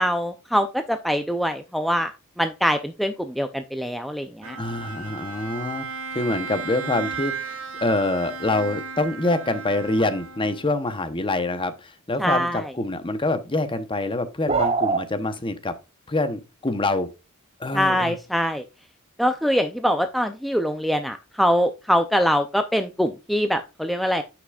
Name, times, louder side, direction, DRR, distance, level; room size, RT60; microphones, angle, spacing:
voice 1, 0.0-4.6 12.2-12.6 17.7-18.6 19.2-24.2, equal, ahead, 0.4 m, -23 dB
Bowed string instrument, 4.4-10.8, right 5 dB, 70° right, 2.1 m, -35 dB
voice 2, 4.6-7.6 7.8-15.7 16.1-17.1 17.6-18.1, left 2 dB, 25° left, 0.8 m, -26 dB
sound 1, 14.5-15.0, right 4 dB, 30° right, 0.8 m, -21 dB
9.7 x 5.9 x 2.4 m
head